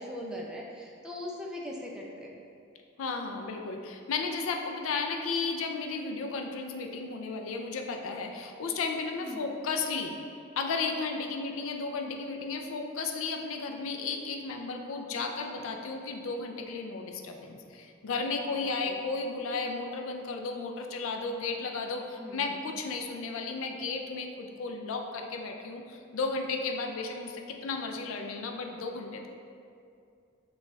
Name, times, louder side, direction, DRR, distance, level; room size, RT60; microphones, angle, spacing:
voice 1, 0.0-2.3 9.2-9.4 18.5-19.0 22.2-22.5, left 1 dB, 5° right, -2 dB, 0.4 m, -40 dB
voice 2, 3.0-10.2 10.6-29.3, left 4 dB, 75° left, 3 dB, 0.4 m, -34 dB
6.3 x 2.4 x 3.1 m, 2.5 s
head